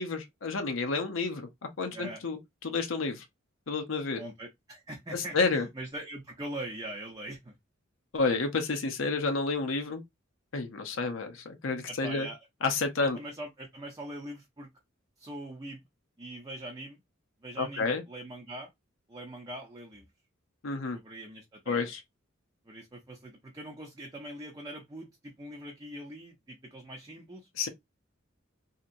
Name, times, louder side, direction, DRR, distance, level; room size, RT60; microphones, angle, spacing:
voice 1, 0.0-1.5 1.8-3.2 3.7-4.2 5.1-5.6 8.1-10.0 10.5-12.3 12.6-13.2 17.6-18.0 20.6-21.0 21.7-22.0 27.6-27.7, left 4 dB, 85° left, 0.7 m, -30 dB
voice 2, 4.2-7.6 11.9-12.4 13.0-14.7 15.2-15.8 16.2-17.0 17.4-18.7 19.1-20.1 20.9-21.8 22.6-27.5, right 1 dB, 20° right, 0.6 m, -42 dB
2.9 x 2.8 x 2.5 m
head